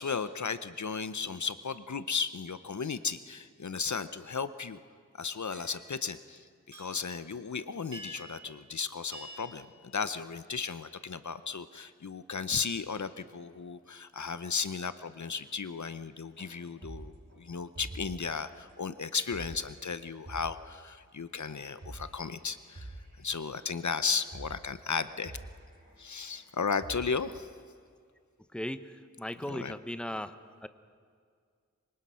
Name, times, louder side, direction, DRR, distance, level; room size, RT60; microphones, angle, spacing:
voice 1, 0.0-4.8 5.2-6.4 6.8-25.3 26.0-27.5 29.5-29.8, left 5 dB, 75° left, 13 dB, 0.7 m, -35 dB
sound 1, 5.5-5.9 6.7-7.1 7.9-8.4 9.1-9.6, equal, 90° right, 5.1 m, -46 dB
sound 2, 16.3-18.3 18.7-18.8 19.2-19.7 19.9-20.0 20.3-20.7 21.5-23.4 23.8-23.9 24.2-24.6 24.9-27.5, right 2 dB, 55° right, 7.8 m, -47 dB
voice 2, 28.5-30.3 30.6-30.7, left 1 dB, 5° left, 11 dB, 0.9 m, -37 dB
25.5 x 24.0 x 5.7 m, 2.1 s
wide cardioid pair, 50°, 29 cm